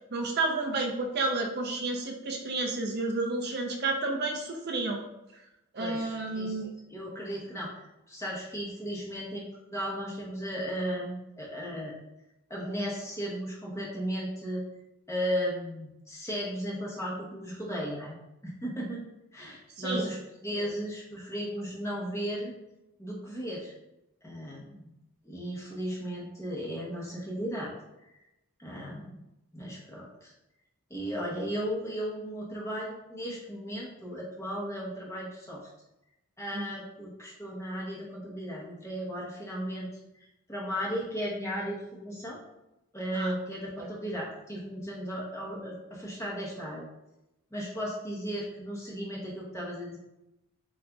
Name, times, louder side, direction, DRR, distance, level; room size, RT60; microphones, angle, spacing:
voice 1, 0.1-5.0 5.7-6.7 19.8-20.1 20.5-20.7 36.5-36.7 43.1-43.3 43.8-43.9, right 3 dB, 45° right, 2 dB, 0.5 m, -31 dB
voice 2, 5.8-6.6 6.9-12.0 12.5-14.6 15.1-18.1 18.4-19.0 19.3-20.2 20.4-22.5 23.0-23.7 24.2-24.9 25.2-27.7 28.0-28.1 28.6-29.1 29.5-30.3 30.9-35.7 36.4-39.9 40.5-42.4 42.9-46.9 47.5-50.0, equal, 15° left, -4 dB, 0.9 m, -35 dB
7.6 x 2.5 x 2.3 m, 0.91 s
head